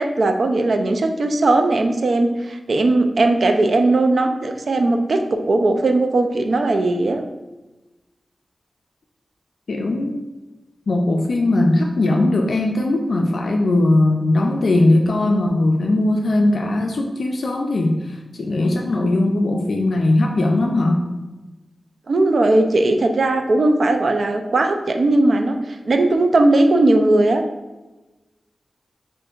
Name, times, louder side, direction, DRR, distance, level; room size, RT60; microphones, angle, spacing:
voice 1, 0.0-7.2 22.1-27.4, right 2 dB, 65° right, 5 dB, 0.4 m, -18 dB
voice 2, 9.7-10.2 10.9-21.0, left 2 dB, 75° left, 1 dB, 0.4 m, -19 dB
6.4 x 2.5 x 2.4 m, 1.1 s
wide cardioid pair, 90°, 0 cm